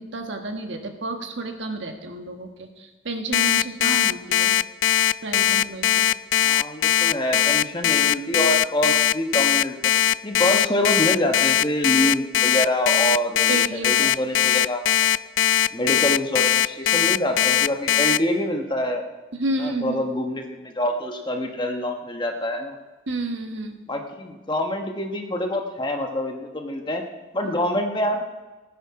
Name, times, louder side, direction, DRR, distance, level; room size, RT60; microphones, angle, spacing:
voice 1, 0.0-4.5 5.2-6.1 13.5-14.1 19.3-20.0 23.1-23.8, right 2 dB, 65° right, 5 dB, 1.3 m, -31 dB
Alarm, 3.3-18.2, left 11 dB, 70° left, 0.3 m, -19 dB
voice 2, 6.4-9.8 10.2-14.8 15.7-19.0 19.6-22.8 23.9-27.0 27.3-28.2, left 1 dB, 25° left, 4 dB, 1.1 m, -26 dB
16.5 x 9.6 x 4.8 m, 1.2 s
head